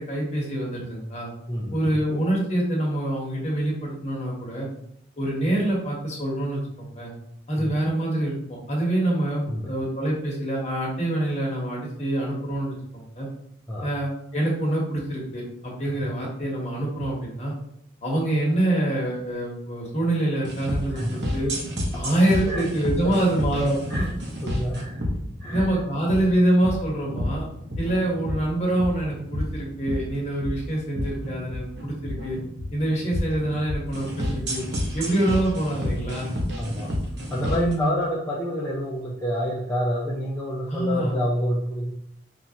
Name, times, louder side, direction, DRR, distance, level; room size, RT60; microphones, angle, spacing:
voice 1, 0.0-1.3 1.7-4.7 5.2-7.1 7.5-12.7 13.1-13.3 13.8-17.5 18.0-21.5 21.9-23.8 25.5-27.5 27.8-32.4 32.7-34.6 34.9-36.4 37.6-38.0 40.7-41.2, right 1 dB, 35° left, -3 dB, 1.2 m, -25 dB
voice 2, 1.5-2.0 7.6-7.7 9.5-9.7 13.7-13.9 15.8-15.9 20.9-21.4 22.5-22.6 23.0-23.1 23.9-24.1 24.4-25.0 25.4-25.7 36.6-36.9 37.3-41.9, equal, 15° left, -7 dB, 0.5 m, -28 dB
sound 1, 20.4-37.7, left 1 dB, 65° right, 0.9 m, -30 dB
5.6 x 2.4 x 2.8 m, 0.73 s
head